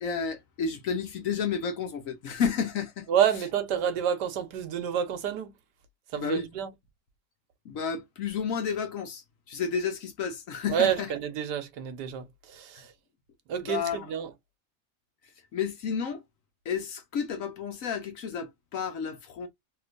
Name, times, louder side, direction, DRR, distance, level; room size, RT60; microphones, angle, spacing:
voice 1, 0.0-3.1 6.2-6.5 7.6-11.1 13.6-14.1 15.5-16.2 16.7-19.5, left 6 dB, 60° left, 1.0 m, -31 dB
voice 2, 3.1-5.5 6.1-6.7 10.7-12.9 13.5-14.3, right 9 dB, 85° right, 1.4 m, -29 dB
3.2 x 2.9 x 2.4 m
omnidirectional pair, 1.8 m